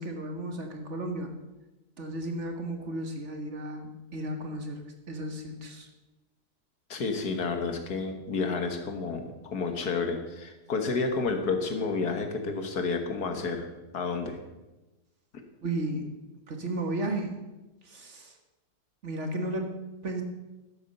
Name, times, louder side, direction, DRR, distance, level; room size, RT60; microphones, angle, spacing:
voice 1, 0.0-1.3 2.0-5.9 15.6-16.1 16.5-17.5 17.8-18.4 19.0-19.7 20.0-20.2, right 1 dB, 50° right, 4 dB, 1.8 m, -34 dB
voice 2, 6.9-13.7 13.9-14.4, left 4 dB, 80° left, 6 dB, 2.0 m, -30 dB
12.0 x 8.5 x 6.8 m, 1.1 s
omnidirectional pair, 1.7 m